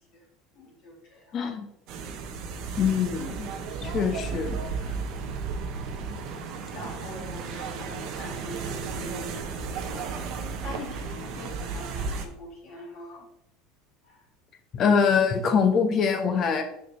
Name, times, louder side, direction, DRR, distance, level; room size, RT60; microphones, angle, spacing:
voice 1, 0.5-1.2 2.3-2.4 6.1-10.1 10.4-13.3 14.0-14.2, left 1 dB, 65° left, -3 dB, 2.2 m, -43 dB
voice 2, 1.3-1.7 2.8-3.5 3.8-4.6 4.8-4.9 14.7-16.6, left 6 dB, 45° left, 5 dB, 1.1 m, -24 dB
sound 1, 1.9-12.2, right 5 dB, 60° right, 0.8 m, -34 dB
6.4 x 4.8 x 3.1 m, 0.80 s
supercardioid pair, 100°, 0 cm